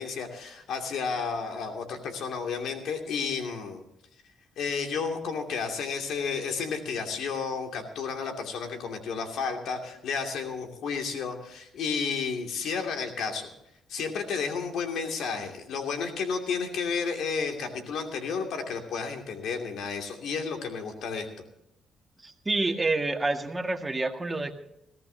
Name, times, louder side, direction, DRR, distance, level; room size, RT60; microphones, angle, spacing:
voice 1, 0.0-3.8 4.6-13.5 13.9-21.3, left 5 dB, 75° left, 4 dB, 2.6 m, -32 dB
voice 2, 22.2-24.6, right 2 dB, 20° right, 4 dB, 1.9 m, -28 dB
21.0 x 15.5 x 2.8 m, 0.81 s
cardioid pair, 90°, 0 cm